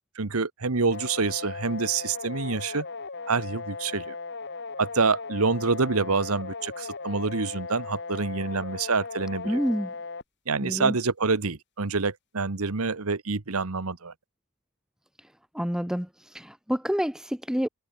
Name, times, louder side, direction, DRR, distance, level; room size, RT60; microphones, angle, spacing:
voice 1, 0.2-2.9 3.3-4.2 4.8-9.6 10.5-14.1, right 4 dB, 70° right, 1.2 m, -27 dB
sound 1, 0.9-10.2, left 4 dB, 50° left, 2.5 m, -37 dB
voice 2, 9.4-9.9 10.6-10.9 15.5-17.7, equal, 5° right, 1.4 m, -28 dB
head